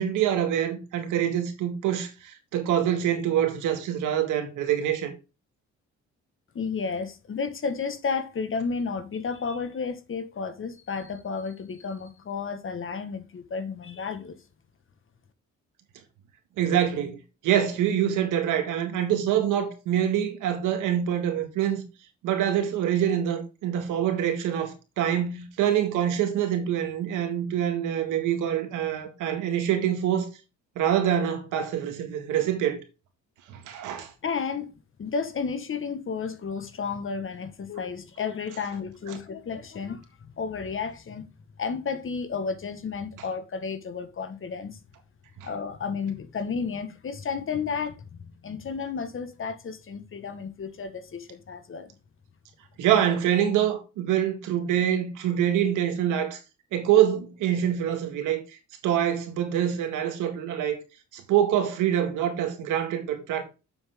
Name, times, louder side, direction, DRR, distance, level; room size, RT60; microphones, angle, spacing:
voice 1, 0.0-5.1 16.6-17.2 17.4-21.8 22.2-30.3 30.8-32.8 33.5-34.1 45.4-45.5 52.8-56.4 56.7-58.4 58.8-60.8 61.1-63.4, right 10 dB, 90° right, 1.9 m, -25 dB
voice 2, 6.5-14.4 34.2-34.7 35.0-41.2 41.6-44.8 45.4-51.9, left 5 dB, 45° left, 1.4 m, -32 dB
7.2 x 7.0 x 3.6 m
cardioid pair, 90°, 30 cm